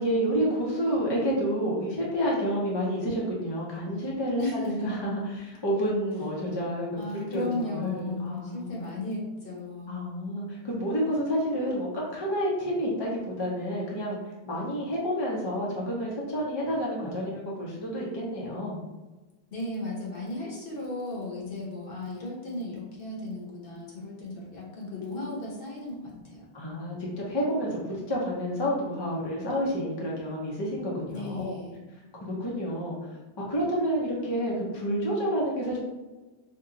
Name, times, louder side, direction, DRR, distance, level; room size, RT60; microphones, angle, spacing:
voice 1, 0.0-7.0 7.3-8.9 9.9-14.2 14.5-18.8 21.4-21.6 25.2-25.3 25.8-25.9 26.5-31.6 32.3-33.0 33.4-35.8, equal, 30° left, -4 dB, 0.6 m, -29 dB
voice 2, 4.4-4.9 6.3-6.5 7.0-10.0 19.5-26.4 31.1-31.8, left 2 dB, 55° left, -4 dB, 1.0 m, -35 dB
2.8 x 2.2 x 3.7 m, 1.2 s
omnidirectional pair, 1.2 m